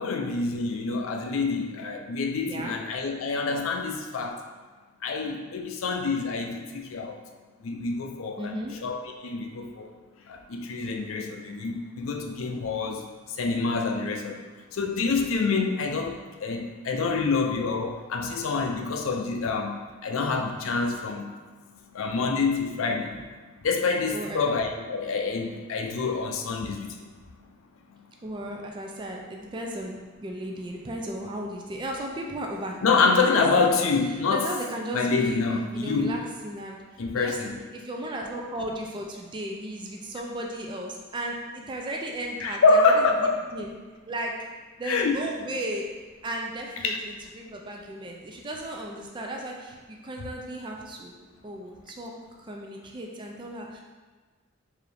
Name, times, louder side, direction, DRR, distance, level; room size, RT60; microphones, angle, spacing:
voice 1, 0.0-4.4 5.0-7.2 7.6-9.9 10.3-14.4 14.7-19.8 20.0-21.3 21.9-23.2 23.6-26.9 32.8-34.5 34.9-36.2 37.0-37.5 42.4-43.3 44.8-45.2 46.8-47.0, left 4 dB, 80° left, 3 dB, 0.5 m, -26 dB
voice 2, 2.4-2.8 8.4-8.7 24.1-24.4 28.2-33.7 34.3-35.4 35.7-36.8 37.1-43.7 44.1-44.4 44.8-45.9 46.2-51.1 51.4-52.1 52.4-53.8, right 1 dB, 25° right, 0 dB, 0.4 m, -35 dB
4.7 x 2.6 x 3.3 m, 1.4 s
head